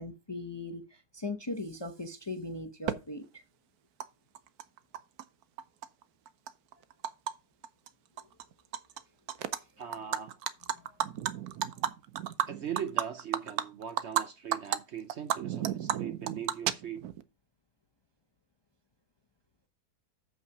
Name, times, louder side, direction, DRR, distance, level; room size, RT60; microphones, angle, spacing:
voice 1, 0.0-3.4 9.4-9.6 10.7-10.9, left 2 dB, 25° left, 0.6 m, -39 dB
Animal, 2.9-3.0 4.0-4.1 4.3-5.2 5.6-7.3 7.6-7.9 8.2-9.0 9.3-9.6 9.9-14.2 14.5-14.8 15.1-17.2, right 11 dB, 80° right, 1.2 m, -32 dB
voice 2, 9.8-10.4 12.5-17.0, right 8 dB, 60° right, 0.8 m, -40 dB
7.3 x 5.6 x 5.8 m
omnidirectional pair, 1.6 m